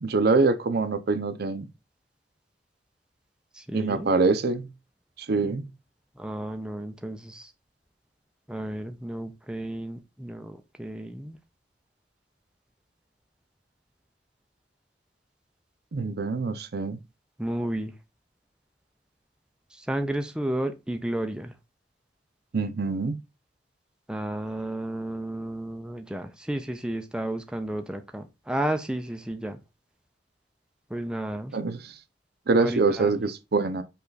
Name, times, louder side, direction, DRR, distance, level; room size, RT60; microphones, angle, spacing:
voice 1, 0.0-1.7 3.7-4.7 5.2-5.7 15.9-17.0 22.5-23.2 31.5-31.9 32.5-33.8, right 3 dB, 60° right, 0.5 m, -25 dB
voice 2, 3.5-4.1 6.2-7.5 8.5-11.4 17.4-17.9 19.8-21.5 24.1-29.6 30.9-31.6 32.6-33.1, right 1 dB, 5° right, 0.4 m, -32 dB
5.5 x 2.4 x 3.9 m
head